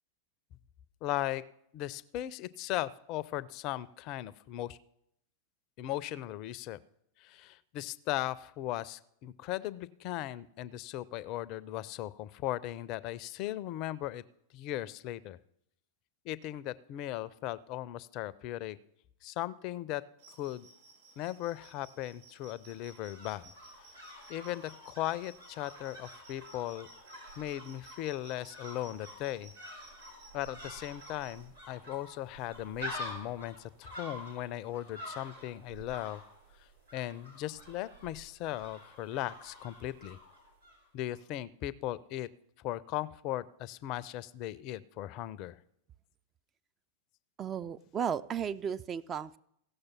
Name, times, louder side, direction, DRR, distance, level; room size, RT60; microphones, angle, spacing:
voice 1, 1.0-1.4 1.7-4.8 5.8-6.8 7.2-14.2 14.5-15.4 16.2-18.8 19.2-20.0 20.4-20.7 21.2-23.5 24.3-26.9 27.4-29.5 30.3-36.2 36.9-40.2 40.9-42.3 42.6-45.6, left 14 dB, 40° left, 18 dB, 0.4 m, -37 dB
sound 1, 20.2-31.4, right 3 dB, 55° right, 4.5 m, -57 dB
sound 2, 22.7-40.8 41.1-41.2, left 1 dB, 85° right, 3.4 m, -48 dB
voice 2, 47.4-49.4, right 8 dB, 25° right, 13 dB, 0.3 m, -34 dB
16.0 x 6.6 x 5.8 m, 0.74 s
figure-of-eight pair, 90°, 0 cm